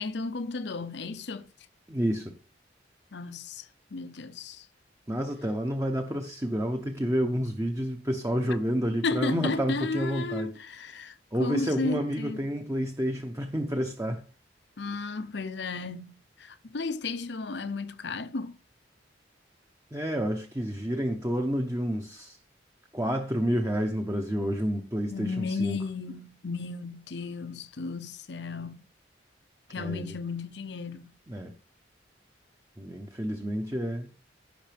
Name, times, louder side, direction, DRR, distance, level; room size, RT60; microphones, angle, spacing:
voice 1, 0.0-1.5 3.1-4.7 8.5-8.6 9.0-12.4 14.8-18.6 25.1-28.8 29.7-31.1, left 3 dB, 65° left, 0.7 m, -34 dB
voice 2, 1.9-2.3 5.1-10.5 11.3-14.2 19.9-22.4 22.9-25.8 29.8-30.1 31.3-31.5 32.8-34.1, equal, 15° right, 1.0 m, -29 dB
16.5 x 5.9 x 3.5 m
head